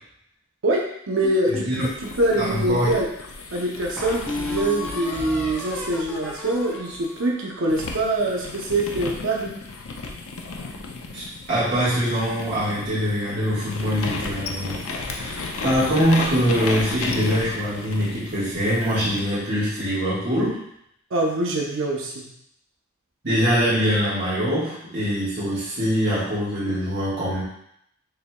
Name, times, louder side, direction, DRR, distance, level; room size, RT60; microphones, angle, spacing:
voice 1, 0.6-3.1 3.5-9.5 21.1-22.3, right 1 dB, 70° right, -2 dB, 0.6 m, -24 dB
sound 1, 1.2-2.8 3.3-3.4 4.0-8.2, left 1 dB, 5° left, 0.6 m, -34 dB
voice 2, 1.5-1.8 2.4-2.9 11.1-14.8 15.1-20.6 23.2-27.4, equal, 50° right, -12 dB, 1.5 m, -23 dB
sound 2, 1.8-7.2 7.7-19.3, left 3 dB, 80° left, 0.5 m, -34 dB
6.6 x 2.9 x 2.2 m, 0.74 s
head